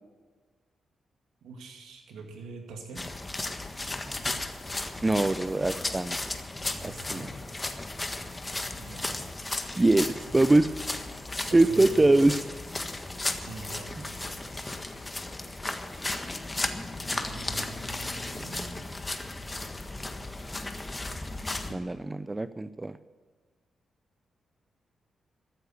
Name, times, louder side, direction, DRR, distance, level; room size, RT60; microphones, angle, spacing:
voice 1, 1.4-3.1 6.8-7.4 8.8-10.4 11.4-12.4 13.4-14.8 17.1-18.9, right 3 dB, 80° right, 3 dB, 2.3 m, -44 dB
sound 1, 3.0-21.7, left 2 dB, 25° left, 1.5 m, -35 dB
voice 2, 5.0-6.2 6.8-7.3 9.7-10.7 11.5-12.4 13.2-13.3 21.7-23.0, right 2 dB, 25° right, 14 dB, 0.6 m, -23 dB
14.0 x 9.6 x 8.5 m, 1.5 s
supercardioid pair, 45°, 0 cm